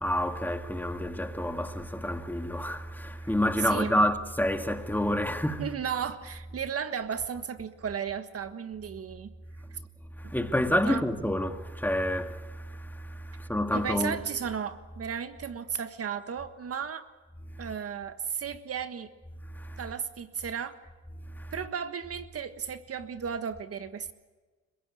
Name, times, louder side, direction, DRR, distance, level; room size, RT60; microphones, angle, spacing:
voice 1, 0.0-5.7 10.2-14.2 19.5-19.8 21.4-21.5, left 1 dB, 5° left, 2.1 m, -29 dB
voice 2, 3.6-4.1 5.6-9.3 9.7-9.8 10.2-10.3 10.8-11.0 13.7-17.1 17.6-19.1 19.8-20.8 21.5-24.1, right 7 dB, 50° right, 1.5 m, -34 dB
30.0 x 16.5 x 8.5 m
cardioid pair, 90°, 30 cm